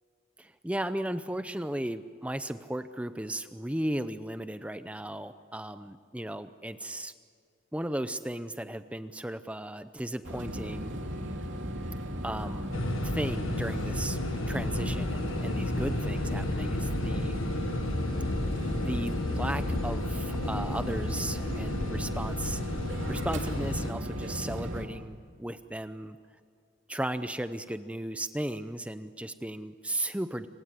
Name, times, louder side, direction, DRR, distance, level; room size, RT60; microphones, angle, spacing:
voice 1, 0.4-7.1 7.7-11.0 12.2-12.7 13.1-14.2 14.5-17.4 18.7-22.6 23.1-26.1 26.9-30.5, right 1 dB, 5° right, 11 dB, 0.6 m, -35 dB
sound 1, 10.2-24.9, equal, 70° right, 2.9 m, -36 dB
sound 2, 12.7-23.9, left 1 dB, 90° left, 1.5 m, -32 dB
26.5 x 17.0 x 9.6 m, 2.1 s
head